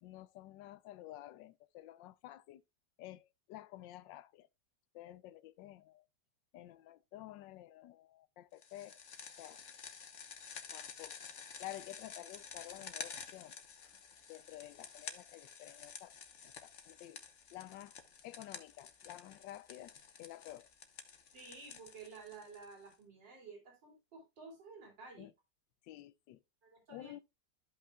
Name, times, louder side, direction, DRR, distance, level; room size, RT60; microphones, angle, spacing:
voice 1, 0.0-2.6 3.0-4.5 4.9-6.1 6.5-9.0 9.4-9.6 10.7-11.2 11.6-13.6 14.3-16.1 16.4-17.2 17.5-18.0 18.2-20.7 25.2-25.3 25.8-26.4 26.9-27.2, left 14 dB, 85° left, 1.3 m, -51 dB
sound 1, 8.6-22.9, left 6 dB, 50° left, 1.1 m, -51 dB
voice 2, 21.3-25.3 26.6-27.1, right 4 dB, 85° right, 3.6 m, -52 dB
13.5 x 5.5 x 2.3 m
omnidirectional pair, 1.9 m